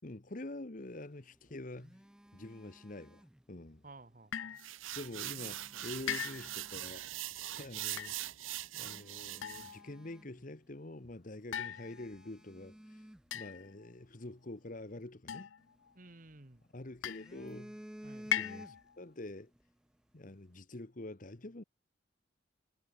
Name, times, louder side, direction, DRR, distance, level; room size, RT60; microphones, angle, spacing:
voice 1, 0.0-2.0 2.3-3.8 4.9-7.1 7.5-8.2 8.7-13.0 13.3-15.5 16.7-17.8 18.2-19.5 20.1-21.6, left 2 dB, 40° left, 1.1 m, -46 dB
Telephone, 1.2-3.8 5.0-6.9 7.6-7.7 8.3-8.4 8.7-10.8 11.0-11.2 11.7-14.1 15.6-16.6 17.0-19.1 19.4-19.6, equal, 5° right, 0.3 m, -54 dB
voice 2, 3.8-4.6 5.4-5.9 15.9-16.6 18.0-18.3, right 2 dB, 40° right, 1.5 m, -56 dB
sound 1, 4.3-4.7 6.1-6.7 7.8-8.2 9.4-10.0 11.5-12.3 13.3-13.9 15.3-15.9 17.0-17.5 18.3-18.9, left 10 dB, 75° left, 0.5 m, -39 dB
sound 2, 4.6-9.7, right 14 dB, 80° right, 1.0 m, -42 dB
head